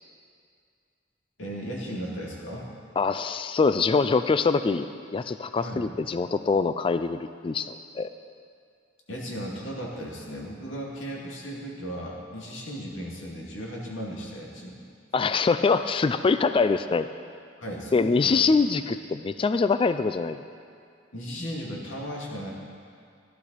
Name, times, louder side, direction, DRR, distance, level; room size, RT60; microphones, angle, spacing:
voice 1, 1.4-2.7 5.5-5.9 9.1-14.8 17.6-18.4 21.1-22.5, equal, 90° left, -3 dB, 2.4 m, -36 dB
voice 2, 3.0-8.1 15.1-17.1 17.9-20.4, left 4 dB, 25° left, 11 dB, 0.3 m, -24 dB
15.0 x 12.0 x 4.2 m, 2.3 s
head